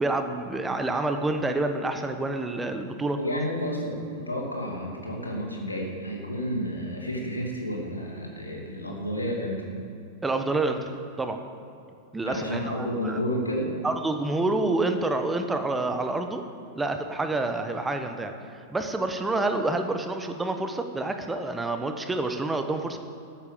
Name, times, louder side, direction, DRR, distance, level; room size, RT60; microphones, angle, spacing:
voice 1, 0.0-3.2 10.2-10.9 11.2-11.4 12.1-13.2 13.8-16.4 16.7-18.3 18.7-23.0, right 2 dB, 10° right, 6 dB, 1.1 m, -28 dB
voice 2, 3.2-9.7 12.2-13.7, equal, 85° left, 0 dB, 2.6 m, -31 dB
13.5 x 8.5 x 7.3 m, 2.5 s
figure-of-eight pair, 95°, 0 cm